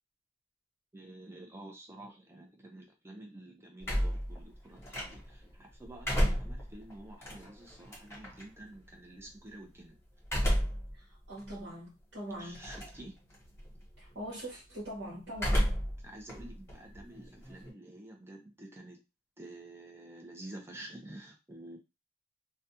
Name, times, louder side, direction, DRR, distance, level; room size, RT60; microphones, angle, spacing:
voice 1, 0.9-9.9 12.4-13.2 16.0-19.0 19.4-21.8, right 1 dB, 15° right, 0.6 m, -49 dB
sound 1, 3.8-5.4 5.8-8.4 10.2-10.9 11.4-11.5 12.6-13.0 13.3-13.8 15.3-16.0 16.3-17.7, equal, 15° left, 1.0 m, -31 dB
voice 2, 11.0-12.7 14.0-15.7, right 1 dB, 70° right, 1.1 m, -42 dB
2.4 x 2.2 x 2.7 m
head